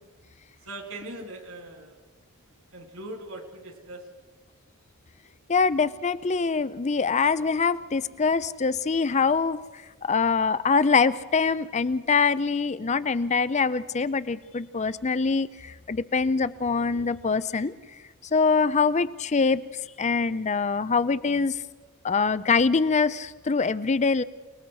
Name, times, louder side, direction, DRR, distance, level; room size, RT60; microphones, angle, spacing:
voice 1, 0.6-2.0 2.5-4.1, right 2 dB, 70° right, 4 dB, 3.4 m, -40 dB
voice 2, 5.5-9.6 10.0-17.7 18.3-19.6 20.0-21.6 22.0-24.2, left 4 dB, 30° left, 15 dB, 0.5 m, -24 dB
29.0 x 19.5 x 4.8 m, 1.3 s
head